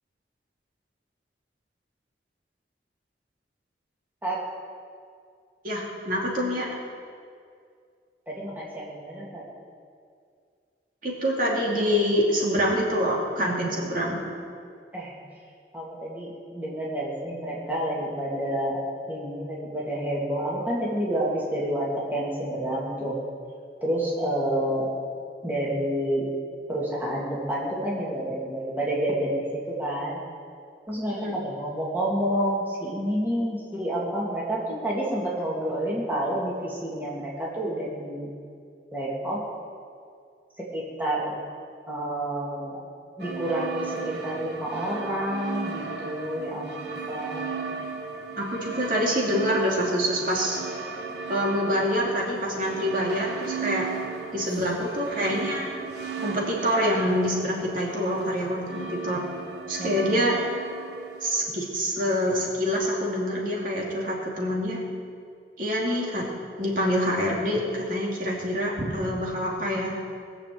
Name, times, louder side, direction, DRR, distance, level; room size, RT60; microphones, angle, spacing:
voice 1, 5.6-6.7 11.0-14.2 31.1-31.4 48.4-50.6 51.3-53.9 54.3-55.7 56.2-59.3 59.7-60.4 61.2-64.8 65.6-66.3 66.6-69.9, equal, 50° right, -3 dB, 2.6 m, -26 dB
voice 2, 8.3-9.4 14.9-15.1 15.7-18.8 19.1-23.1 23.8-24.9 25.4-26.3 26.7-30.2 30.9-38.3 38.9-39.4 40.6-41.3 41.9-42.8 43.2-47.4 59.8-60.1, right 1 dB, 10° right, -6 dB, 2.8 m, -29 dB
sound 1, 43.2-61.5, right 5 dB, 75° right, 1.5 m, -36 dB
20.5 x 7.0 x 7.9 m, 2.3 s
head